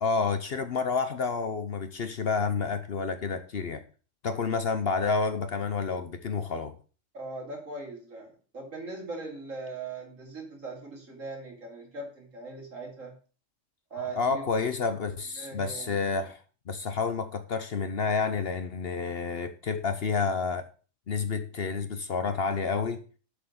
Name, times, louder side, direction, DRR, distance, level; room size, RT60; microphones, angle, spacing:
voice 1, 0.0-3.8 4.2-6.8 14.1-20.7 21.1-23.1, left 4 dB, 55° left, 1.0 m, -29 dB
voice 2, 7.1-13.1 13.9-14.4 15.4-16.3, right 3 dB, 85° right, 3.4 m, -40 dB
7.7 x 6.6 x 6.6 m
omnidirectional pair, 1.3 m